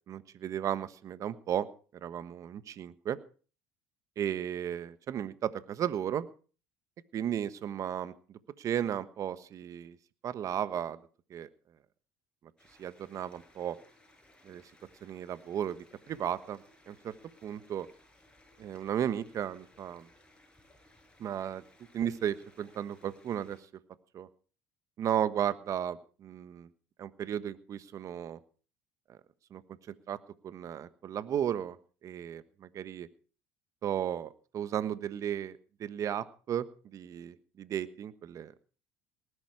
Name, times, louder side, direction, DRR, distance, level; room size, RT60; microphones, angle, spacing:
voice 1, 0.1-1.7 2.0-3.2 4.2-6.3 7.1-10.0 10.2-11.0 11.3-11.5 12.8-13.8 14.4-14.6 15.0-17.1 17.4-17.9 18.6-20.1 21.2-21.6 21.9-23.6 24.1-24.3 25.0-26.7 27.0-28.4 29.1-29.2 29.5-29.6 29.9-30.2 30.4-31.8 32.0-33.1 33.8-36.7 36.9-38.5, right 9 dB, 50° right, 14 dB, 1.3 m, -34 dB
sound 1, 12.6-23.6, left 1 dB, 15° left, 6.4 m, -62 dB
19.5 x 11.5 x 4.7 m, 0.39 s
supercardioid pair, 80°, 7 cm